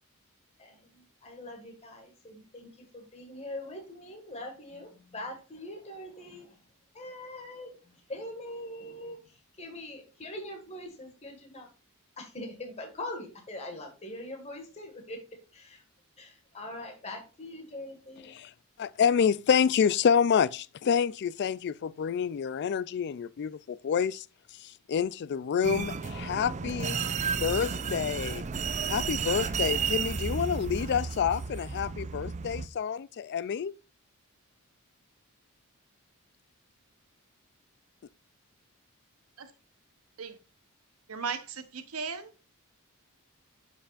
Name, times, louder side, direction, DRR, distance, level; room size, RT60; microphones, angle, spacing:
voice 1, 0.6-6.6 6.9-11.7 12.2-15.2 15.5-15.8 16.2-18.4, left 1 dB, 30° left, 1.8 m, -42 dB
voice 2, 18.8-24.3 24.5-27.0 27.4-28.4 28.9-33.7, left 7 dB, 50° left, 0.3 m, -28 dB
sound 1, 25.6-32.7, right 5 dB, 35° right, 0.4 m, -32 dB
voice 3, 41.1-42.3, right 5 dB, 75° right, 0.9 m, -36 dB
11.0 x 5.6 x 2.5 m
head